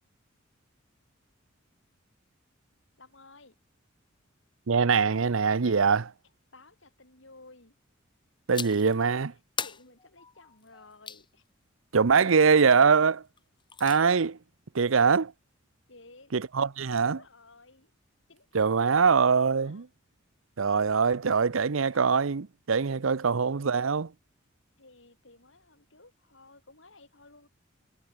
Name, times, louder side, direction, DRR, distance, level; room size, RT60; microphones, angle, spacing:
voice 1, 3.0-3.6 5.0-5.3 5.6-5.7 6.5-7.7 8.5-9.1 9.6-11.4 15.9-16.3 16.9-17.9 18.3-19.8 24.8-27.5, left 3 dB, 65° left, 5.7 m, -55 dB
voice 2, 4.7-6.1 8.5-9.3 11.9-13.2 13.8-14.4 14.7-15.3 16.3-17.2 18.5-19.9 20.6-24.1, right 5 dB, 80° right, 0.7 m, -23 dB
sound 1, 8.5-8.9 9.6-11.3 13.4-14.0, left 6 dB, 25° left, 2.9 m, -38 dB
head